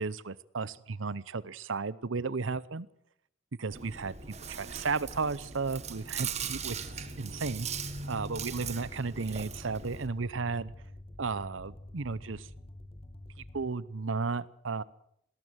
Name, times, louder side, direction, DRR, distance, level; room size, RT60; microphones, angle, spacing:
voice 1, 0.0-2.9 3.6-7.7 8.1-10.7 11.2-12.5 13.5-14.8, right 4 dB, 85° right, 19 dB, 0.8 m, -34 dB
Chewing mastication, 3.7-10.1, right 6 dB, 35° right, 1.7 m, -39 dB
sound 1, 6.4-13.7, left 1 dB, 30° left, 1.4 m, -48 dB
20.0 x 18.5 x 8.0 m, 0.72 s
head